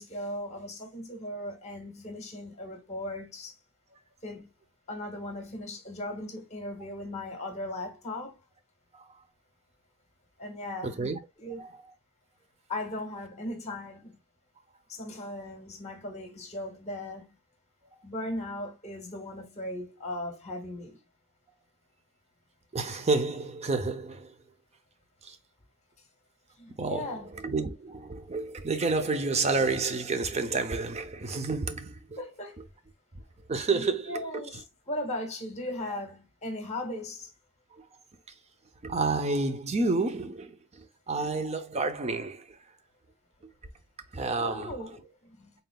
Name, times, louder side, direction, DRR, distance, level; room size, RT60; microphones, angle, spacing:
voice 1, 0.0-3.6 4.2-4.5 4.9-8.4 10.4-11.0 11.4-11.6 12.7-14.2 14.9-17.4 18.0-21.0 26.6-27.3 32.2-32.6 33.7-34.6 34.9-37.3 44.4-45.5, left 1 dB, 30° left, 1.5 m, -38 dB
voice 2, 10.8-11.2 11.6-11.7 22.7-24.4 25.2-25.4 26.8-32.2 33.5-34.4 37.7-37.9 38.8-42.6 43.4-43.5 44.1-44.8, right 3 dB, 30° right, 0.6 m, -30 dB
4.0 x 3.7 x 2.2 m
head